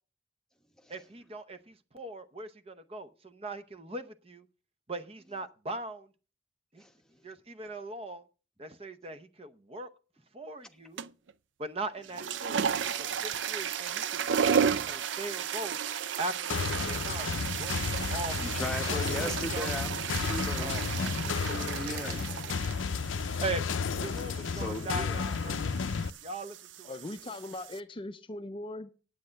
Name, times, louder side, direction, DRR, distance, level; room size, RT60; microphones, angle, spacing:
voice 1, 0.9-4.5 4.9-6.1 6.7-6.8 7.2-8.2 8.6-9.9 10.3-11.1 11.6-12.6 13.0-15.8 16.2-18.3 18.8-19.7 20.6-21.6 21.9-22.8 23.4-23.6 24.0-25.8 26.2-27.1, right 2 dB, 30° right, 0.8 m, -40 dB
sound 1, 11.0-11.3 12.0-27.8, right 7 dB, 75° right, 0.5 m, -34 dB
sound 2, 16.5-26.1, left 5 dB, 90° left, 0.5 m, -33 dB
voice 2, 18.4-20.0 20.3-20.8 21.4-22.3 24.5-25.2 25.4-25.6, left 1 dB, 5° left, 1.1 m, -37 dB
voice 3, 26.8-28.9, left 2 dB, 25° left, 0.5 m, -40 dB
10.5 x 8.6 x 6.3 m
head